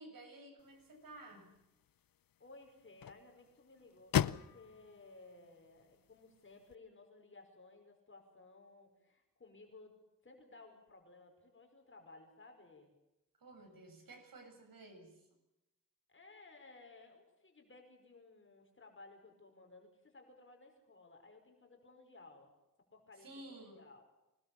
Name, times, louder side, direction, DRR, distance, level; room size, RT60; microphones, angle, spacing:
voice 1, 0.0-1.5 13.4-15.3 23.2-23.8, right 2 dB, 85° right, 4 dB, 7.7 m, -54 dB
sound 1, 0.6-6.7, left 9 dB, 80° left, 0.7 m, -41 dB
voice 2, 2.4-12.9 16.1-22.5 22.9-24.1, left 3 dB, 35° left, 2 dB, 5.0 m, -58 dB
25.0 x 20.5 x 7.2 m, 0.93 s
wide cardioid pair, 170°, 34 cm